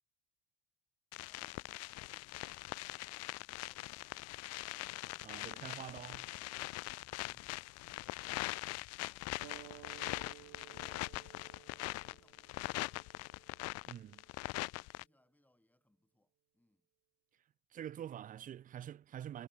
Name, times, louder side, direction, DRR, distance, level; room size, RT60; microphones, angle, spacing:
sound 1, 1.1-15.0, left 22 dB, 50° left, 0.5 m, -42 dB
voice 1, 5.2-6.2 13.9-14.2 17.7-19.5, right 10 dB, 25° right, 0.5 m, -46 dB
sound 2, 9.4-14.6, right 25 dB, 65° right, 1.8 m, -58 dB
voice 2, 11.7-12.9 14.5-16.9, left 1 dB, 5° left, 6.4 m, -74 dB
cardioid pair, 140°, 34 cm